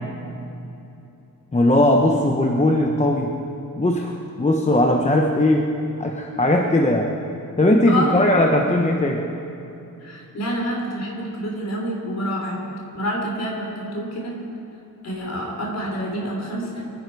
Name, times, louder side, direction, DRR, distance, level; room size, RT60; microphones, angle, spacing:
voice 1, 1.5-3.3 3.8-5.7 6.0-7.1 7.6-9.2, left 1 dB, 20° left, 1 dB, 0.9 m, -18 dB
voice 2, 7.9-8.3 10.0-12.6 12.9-14.3 15.0-16.8, equal, 45° left, -1 dB, 3.7 m, -27 dB
26.0 x 10.5 x 4.8 m, 2.8 s
wide cardioid pair, 145°, 36 cm